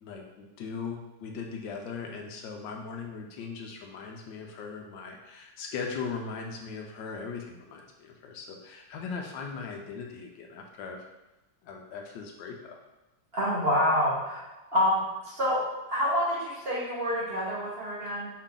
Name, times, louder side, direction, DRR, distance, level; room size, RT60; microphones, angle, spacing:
voice 1, 0.0-11.0 11.6-12.8, left 5 dB, 80° left, 2 dB, 1.3 m, -39 dB
voice 2, 13.3-14.4 14.7-15.6 15.9-18.3, equal, 40° right, -8 dB, 1.2 m, -27 dB
4.8 x 2.8 x 3.7 m, 1.0 s
omnidirectional pair, 2.0 m